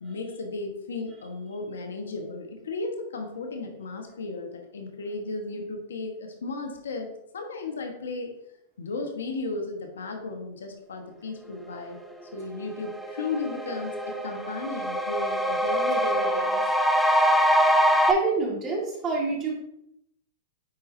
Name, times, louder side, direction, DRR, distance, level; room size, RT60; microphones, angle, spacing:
voice 1, 0.0-8.3 8.8-12.0 12.3-16.6, left 3 dB, 90° left, 3 dB, 1.3 m, -35 dB
sound 1, 12.3-12.4 12.8-18.1, equal, ahead, 0.6 m, -24 dB
voice 2, 18.1-19.5, right 3 dB, 30° right, -2 dB, 1.8 m, -26 dB
9.4 x 4.2 x 2.7 m, 0.78 s
hypercardioid pair, 125°, 0 cm